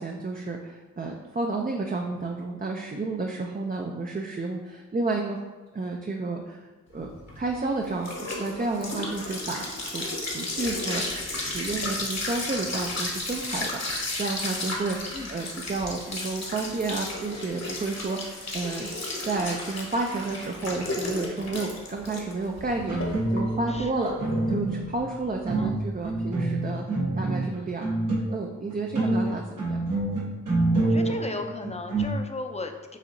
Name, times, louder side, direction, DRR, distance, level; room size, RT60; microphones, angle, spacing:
voice 1, 0.0-5.4 5.7-6.6 6.9-7.1 7.4-13.8 14.2-18.9 19.2-24.1 24.5-26.8 27.2-27.9 28.3-29.8, right 3 dB, 30° right, 1 dB, 0.5 m, -31 dB
sound 1, 7.0-26.1, left 2 dB, 55° left, 1.2 m, -34 dB
sound 2, 22.7-23.8 24.2-25.0 25.4-28.4 28.7-32.1, right 2 dB, 80° right, 1.4 m, -26 dB
voice 2, 23.7-24.3 25.6-25.7 29.0-29.2 30.8-33.0, left 3 dB, 20° left, 5 dB, 0.5 m, -36 dB
7.2 x 2.7 x 2.6 m, 1.3 s
cardioid pair, 40°, 31 cm